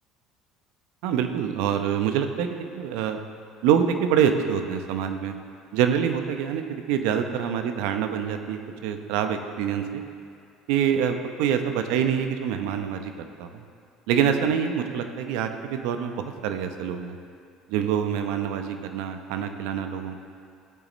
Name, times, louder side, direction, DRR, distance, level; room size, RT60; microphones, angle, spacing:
voice 1, 1.0-3.2 3.6-5.3 5.7-10.0 10.7-13.6 14.1-17.2 17.7-20.2, right 8 dB, 70° right, 7 dB, 0.8 m, -26 dB
16.0 x 8.3 x 3.1 m, 2.4 s
hypercardioid pair, 75°, 0 cm